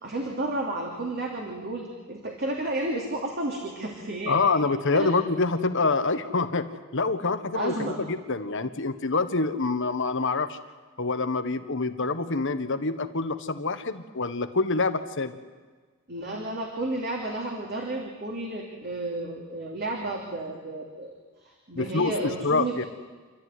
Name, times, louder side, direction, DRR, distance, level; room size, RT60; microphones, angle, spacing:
voice 1, 0.0-4.4 4.9-5.1 7.5-8.0 16.1-21.1 21.4-22.8, right 2 dB, 50° right, 0 dB, 3.0 m, -32 dB
voice 2, 4.3-10.6 11.0-15.3 21.7-22.1 22.4-22.8, left 3 dB, 60° left, 9 dB, 1.4 m, -26 dB
28.0 x 13.5 x 9.7 m, 1.4 s
head